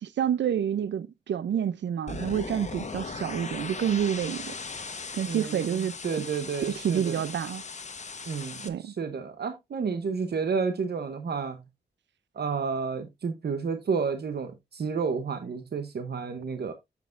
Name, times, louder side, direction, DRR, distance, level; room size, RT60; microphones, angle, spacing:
voice 1, 0.0-4.5 5.1-6.0 6.7-7.6 8.6-8.9, right 9 dB, 90° right, 0.4 m, -28 dB
sound 1, 2.1-8.7, left 4 dB, 40° left, 1.0 m, -38 dB
voice 2, 5.3-7.2 8.3-11.6 12.3-16.7, right 5 dB, 65° right, 0.8 m, -31 dB
9.3 x 7.4 x 2.4 m
wide cardioid pair, 140°, 18 cm